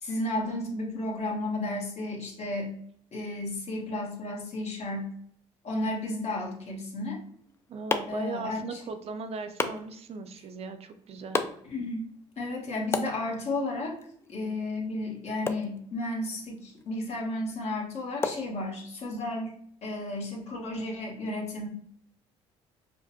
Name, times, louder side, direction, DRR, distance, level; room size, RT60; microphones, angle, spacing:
voice 1, 0.0-2.7 3.1-5.1 5.6-7.2 8.1-8.8 11.6-12.1 12.4-14.0 14.3-19.5 19.8-21.7, left 2 dB, 50° left, -1 dB, 1.2 m, -33 dB
sound 1, 7.2-19.2, left 3 dB, 20° left, 0.3 m, -38 dB
voice 2, 7.7-11.4, right 4 dB, 45° right, 7 dB, 0.5 m, -38 dB
5.0 x 2.1 x 2.7 m, 0.66 s
supercardioid pair, 75°, 14 cm